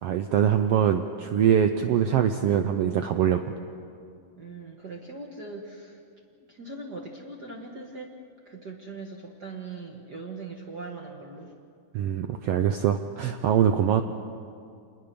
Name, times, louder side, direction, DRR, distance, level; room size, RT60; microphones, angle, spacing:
voice 1, 0.0-3.4 11.9-14.0, right 9 dB, 85° right, 7 dB, 1.3 m, -23 dB
voice 2, 4.3-6.0 6.5-8.1 8.4-11.5 13.8-14.0, right 3 dB, 40° right, 0 dB, 1.7 m, -40 dB
26.5 x 20.5 x 6.9 m, 2.4 s
omnidirectional pair, 3.7 m